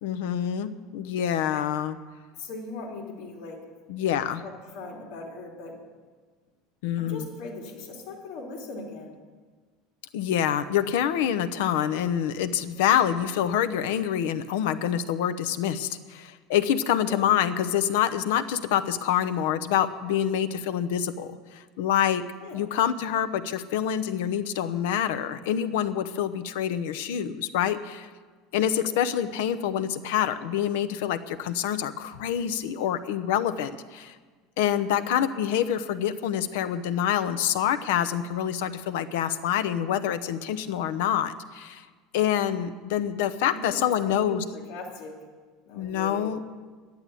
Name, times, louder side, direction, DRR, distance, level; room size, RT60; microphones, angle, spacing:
voice 1, 0.0-2.0 3.9-4.4 6.8-7.3 10.1-22.3 22.5-28.1 28.5-34.2 34.6-41.9 42.1-44.4 45.8-46.4, left 10 dB, 80° left, 11 dB, 0.8 m, -26 dB
voice 2, 2.4-3.6 4.4-5.7 7.0-9.1 17.1-17.2 22.4-22.6 28.8-29.0 34.9-35.0 43.5-43.8 44.0-45.1 45.6-46.5, left 2 dB, 55° left, 0 dB, 3.2 m, -39 dB
11.0 x 10.5 x 8.4 m, 1.4 s
cardioid pair, 170°, 0 cm